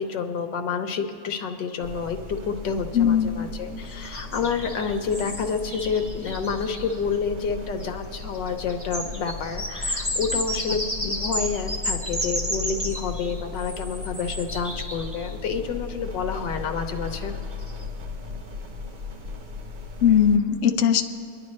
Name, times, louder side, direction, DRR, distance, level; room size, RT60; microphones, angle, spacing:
voice 1, 0.0-17.4, left 5 dB, 85° left, 5 dB, 1.6 m, -29 dB
sound 1, 1.8-20.4, left 5 dB, 40° right, 0.7 m, -37 dB
voice 2, 2.9-3.3 11.0-11.1 20.0-21.0, left 8 dB, 60° left, 5 dB, 0.9 m, -19 dB
sound 2, 4.0-6.9 7.8-7.9 8.1-15.3 17.1-17.2 17.6-17.8, equal, 10° right, 0.9 m, -32 dB
25.5 x 11.0 x 3.2 m, 2.8 s
omnidirectional pair, 1.9 m